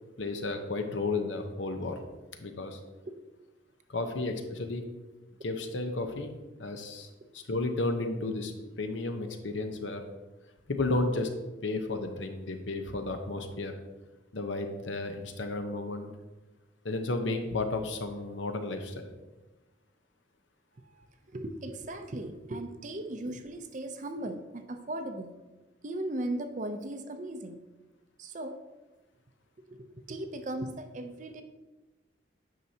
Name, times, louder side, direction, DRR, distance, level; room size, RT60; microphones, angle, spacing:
voice 1, 0.2-2.0 2.4-2.8 3.9-4.8 5.4-6.3 6.6-7.1 7.3-10.0 10.7-11.3 11.6-13.7 14.3-16.1 16.8-19.1, left 2 dB, 80° left, 6 dB, 0.8 m, -33 dB
voice 2, 20.8-25.3 25.8-27.6 28.2-28.6 29.7-31.4, right 1 dB, 40° right, 7 dB, 0.5 m, -37 dB
9.2 x 5.9 x 2.8 m, 1.2 s
head